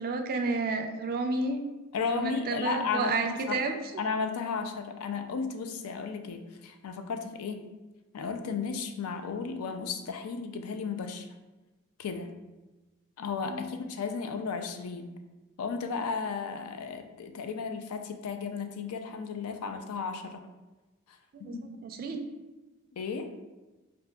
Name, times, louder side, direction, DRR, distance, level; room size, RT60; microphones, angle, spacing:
voice 1, 0.0-1.6 2.1-3.7 13.4-13.7 21.3-21.5 21.8-22.2, right 3 dB, 40° right, 5 dB, 0.3 m, -31 dB
voice 2, 1.9-3.6 4.0-7.6 8.1-11.3 12.0-12.3 13.2-15.1 15.6-20.4 21.1-21.2 21.5-21.6 23.0-23.3, left 5 dB, 80° left, 7 dB, 0.4 m, -34 dB
4.6 x 2.5 x 2.2 m, 1.1 s
head